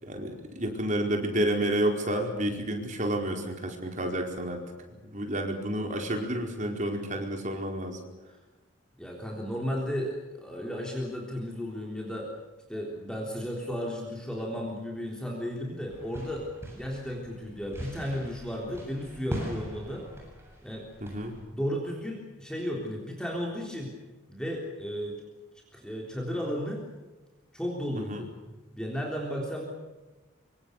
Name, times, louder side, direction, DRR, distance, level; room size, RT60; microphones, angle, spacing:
voice 1, 0.0-4.6 5.0-8.0 21.0-21.4 28.0-28.2, right 1 dB, 35° right, 2 dB, 4.7 m, -30 dB
voice 2, 9.0-12.3 12.7-16.5 16.8-20.1 20.6-20.9 21.5-23.9 24.3-25.2 25.7-26.8 27.5-28.3 28.7-29.7, equal, 5° left, -1 dB, 3.6 m, -34 dB
sound 1, 15.9-21.4, equal, 10° right, 7.9 m, -41 dB
26.0 x 25.0 x 6.7 m, 1.2 s
head